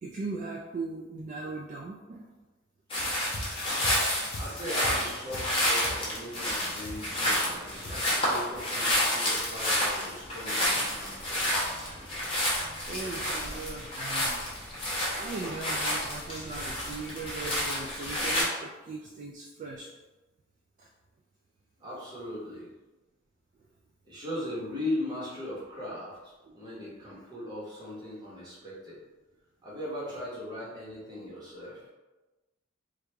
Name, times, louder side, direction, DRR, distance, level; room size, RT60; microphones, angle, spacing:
voice 1, 0.0-2.3 12.4-12.5 12.8-14.4 15.1-19.9 20.8-20.9 26.4-26.5, right 3 dB, 40° right, 0 dB, 0.3 m, -39 dB
sound 1, 2.9-18.4, left 1 dB, 30° left, 1.0 m, -30 dB
sound 2, 3.0-8.2, left 1 dB, 50° left, 0.5 m, -41 dB
voice 2, 4.3-11.5 21.8-22.7 24.0-29.0 29.6-31.8, left 1 dB, 20° right, -8 dB, 1.2 m, -38 dB
3.1 x 2.4 x 3.3 m, 1.2 s
head